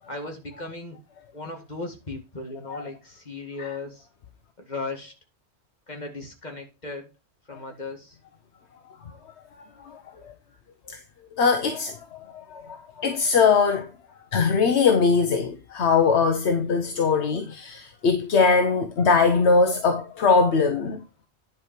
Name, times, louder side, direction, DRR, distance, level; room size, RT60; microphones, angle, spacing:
voice 1, 0.1-1.0 1.3-4.1 4.7-5.1 5.9-7.1 7.5-8.2, left 3 dB, 40° left, 2.2 m, -36 dB
voice 2, 9.9-10.3 10.9-11.0 11.4-12.0 12.5-13.9 14.3-21.0, left 5 dB, 85° left, 1.2 m, -21 dB
10.5 x 4.9 x 4.5 m
omnidirectional pair, 1.1 m